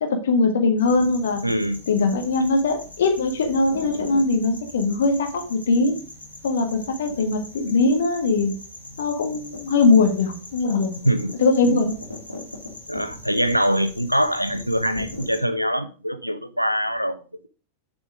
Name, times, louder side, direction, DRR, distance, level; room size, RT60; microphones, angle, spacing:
voice 1, 0.0-1.4 1.9-6.0 6.4-8.5 9.0-11.0 11.4-11.9, left 3 dB, 60° left, 1.6 m, -21 dB
sound 1, 0.8-15.4, left 1 dB, 85° left, 2.1 m, -40 dB
voice 2, 1.4-1.8 11.0-11.3 11.6-11.9 12.9-17.2, equal, 90° right, 0.6 m, -23 dB
7.3 x 5.0 x 4.9 m
figure-of-eight pair, 90°, 0 cm